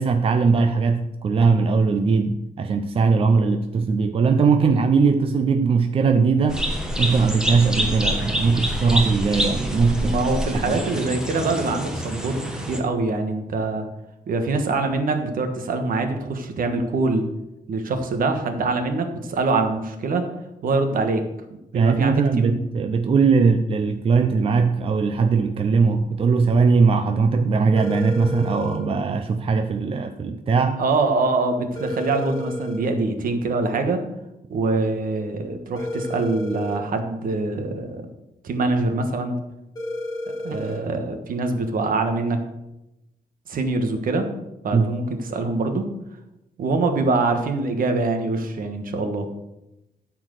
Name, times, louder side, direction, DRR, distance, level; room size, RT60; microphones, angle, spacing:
voice 1, 0.0-6.6 7.0-10.2 10.7-10.8 21.7-30.8 44.7-44.9, right 4 dB, 35° right, 7 dB, 0.5 m, -20 dB
sound 1, 6.5-12.8, equal, 5° right, 1.5 m, -26 dB
voice 2, 10.0-13.8 14.3-17.2 17.7-20.3 20.6-21.2 21.7-22.6 23.4-23.5 30.8-34.0 34.5-38.0 38.4-39.3 40.4-42.4 43.5-44.3 44.6-45.9 46.6-49.3, right 3 dB, 65° right, 6 dB, 1.4 m, -24 dB
sound 2, 27.8-28.8 31.8-32.8 35.8-36.8 39.8-40.8, left 1 dB, 25° left, 2.3 m, -31 dB
12.5 x 4.6 x 6.4 m, 0.92 s
wide cardioid pair, 145°, 16 cm